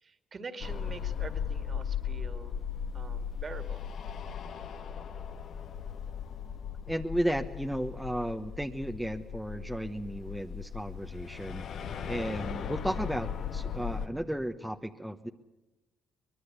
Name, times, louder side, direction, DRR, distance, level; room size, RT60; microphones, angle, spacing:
voice 1, 0.0-2.6 2.9-3.8, right 4 dB, 40° right, 9 dB, 2.3 m, -44 dB
sound 1, 0.6-14.1, left 7 dB, 70° left, 1.5 m, -37 dB
voice 2, 6.9-11.7 12.1-15.3, equal, 5° right, 5 dB, 1.1 m, -34 dB
23.5 x 21.0 x 8.2 m, 1.0 s
cardioid pair, 90°, 0 cm